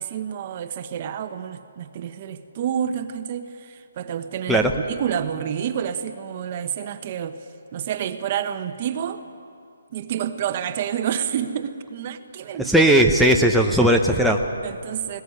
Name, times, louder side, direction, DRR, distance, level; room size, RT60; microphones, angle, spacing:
voice 1, 0.0-7.4 7.7-9.2 9.9-12.7 14.6-15.2, right 9 dB, 35° right, 9 dB, 1.2 m, -29 dB
voice 2, 12.6-14.4, right 1 dB, ahead, 3 dB, 0.8 m, -17 dB
20.0 x 19.0 x 9.6 m, 2.6 s
hypercardioid pair, 165°, 0 cm